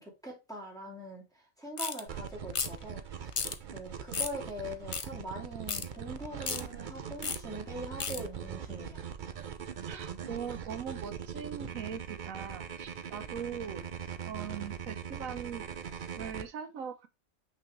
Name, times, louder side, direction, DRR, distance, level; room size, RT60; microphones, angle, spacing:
voice 1, 0.0-3.4 3.7-9.1, equal, 5° left, 2.4 m, -42 dB
sound 1, 1.8-2.0 2.5-2.8 3.3-3.6 4.1-4.4 4.9-5.1 5.7-5.9 6.4-6.6 7.2-7.4 8.0-8.2, left 5 dB, 60° left, 0.3 m, -33 dB
sound 2, 2.1-16.4, right 8 dB, 50° right, 0.6 m, -41 dB
voice 2, 9.9-13.8 14.2-15.7 16.2-17.1, right 7 dB, 80° right, 1.2 m, -40 dB
6.1 x 5.6 x 3.1 m
omnidirectional pair, 1.4 m